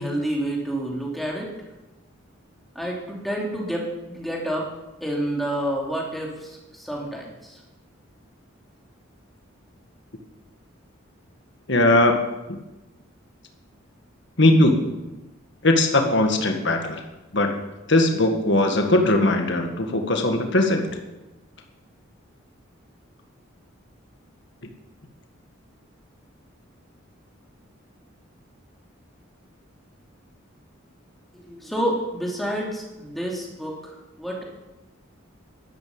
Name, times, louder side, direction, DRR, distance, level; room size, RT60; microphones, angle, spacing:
voice 1, 0.0-1.5 2.7-4.7 5.0-7.6 31.5-34.4, right 1 dB, ahead, -2 dB, 2.8 m, -29 dB
voice 2, 11.7-12.2 14.4-14.9 15.6-17.0 17.3-17.5 17.9-20.9, left 1 dB, 60° left, 4 dB, 1.8 m, -19 dB
12.0 x 11.0 x 7.2 m, 1.0 s
head